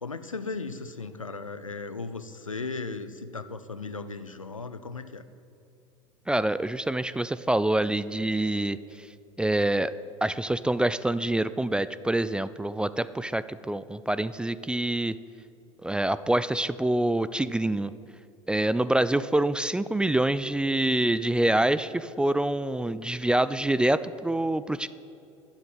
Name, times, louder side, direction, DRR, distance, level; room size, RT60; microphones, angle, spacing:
voice 1, 0.0-5.2, left 3 dB, 90° left, 12 dB, 0.6 m, -36 dB
voice 2, 6.3-8.8 9.4-9.9 10.2-15.2 15.8-17.9 18.5-24.9, right 1 dB, 5° right, 16 dB, 0.3 m, -26 dB
12.0 x 8.1 x 9.0 m, 2.6 s
figure-of-eight pair, 75°, 17 cm